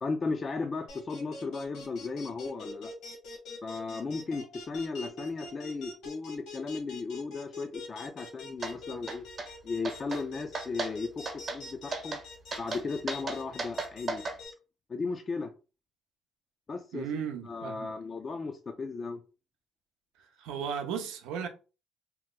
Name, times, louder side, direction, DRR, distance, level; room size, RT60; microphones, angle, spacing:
voice 1, 0.0-2.9 3.6-9.2 9.6-12.2 12.6-14.2 14.9-15.5 16.7-19.2, left 4 dB, 35° left, 0.4 m, -36 dB
sound 1, 0.9-14.5, left 2 dB, 80° left, 1.4 m, -44 dB
sound 2, 8.6-8.7 9.1-9.5 9.8-10.2 10.5-10.9 11.3-11.6 11.9-12.2 12.5-14.4, right 3 dB, 40° right, 0.9 m, -35 dB
voice 2, 16.9-17.9 20.4-21.5, right 7 dB, 85° right, 0.6 m, -35 dB
2.9 x 2.1 x 3.6 m
cardioid pair, 85°, 0 cm